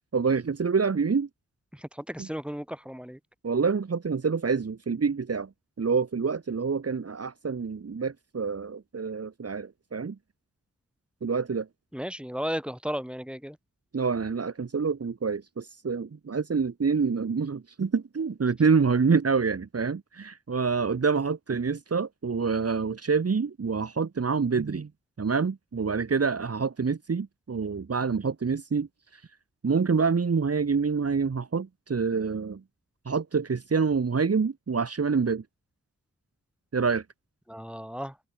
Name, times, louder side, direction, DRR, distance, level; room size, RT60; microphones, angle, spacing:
voice 1, 0.1-1.3 2.2-2.3 3.4-5.5 5.8-10.2 11.2-11.7 13.9-24.9 25.2-29.2 29.6-32.6 33.1-35.4 36.7-37.0, right 5 dB, 50° right, 1.9 m, -27 dB
voice 2, 1.7-3.2 11.9-13.6 37.5-38.1, equal, 5° right, 7.0 m, -34 dB
wide cardioid pair, 80°, 30 cm